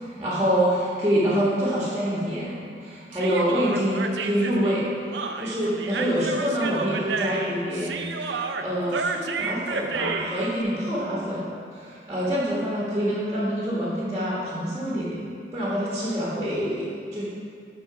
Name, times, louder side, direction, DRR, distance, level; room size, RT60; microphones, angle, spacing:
voice 1, 0.1-4.9 5.4-15.2 15.5-17.2, equal, 15° right, -8 dB, 1.4 m, -26 dB
Human voice, 3.1-10.5, right 4 dB, 85° right, 0.5 m, -31 dB
9.9 x 4.0 x 5.7 m, 2.3 s
head